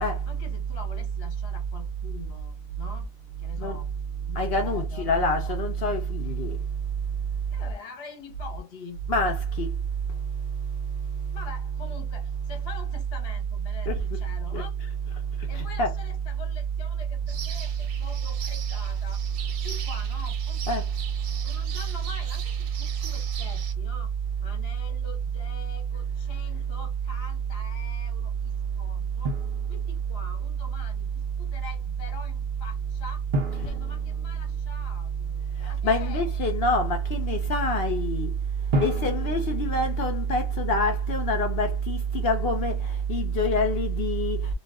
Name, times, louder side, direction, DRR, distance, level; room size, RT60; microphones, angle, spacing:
voice 1, 0.3-3.1 3.4-3.9 4.2-5.1 5.4-5.6 7.5-9.0 11.3-14.7 15.5-19.2 19.6-20.6 21.4-24.1 24.4-29.3 29.7-33.2 33.5-36.4 39.4-39.5, left 4 dB, 50° left, 0.8 m, -45 dB
voice 2, 4.4-6.6 9.1-9.7 13.9-14.0 14.5-14.6 15.5-15.9 20.7-20.8 35.8-38.3 38.8-42.8 43.1-44.4, equal, 70° left, 0.5 m, -25 dB
sound 1, 17.3-23.7, right 8 dB, 65° right, 0.9 m, -41 dB
Drum, 29.3-30.3 33.3-35.2 38.7-40.7, right 1 dB, 85° right, 0.4 m, -33 dB
2.4 x 2.3 x 3.4 m
omnidirectional pair, 1.7 m